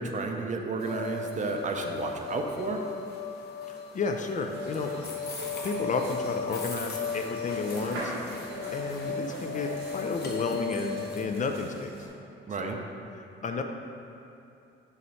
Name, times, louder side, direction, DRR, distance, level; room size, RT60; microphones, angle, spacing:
voice 1, 0.0-2.8 12.5-12.8, right 4 dB, 40° right, 3 dB, 0.6 m, -32 dB
sound 1, 0.8-11.2, left 5 dB, 55° left, 0.9 m, -36 dB
voice 2, 3.7-4.9 5.6-8.1 8.7-11.9 12.6-12.8 13.4-13.6, left 4 dB, 40° left, 4 dB, 0.4 m, -32 dB
sound 2, 4.5-12.1, right 1 dB, 85° right, 1.4 m, -42 dB
5.6 x 3.1 x 5.5 m, 2.6 s
cardioid pair, 90°, 20 cm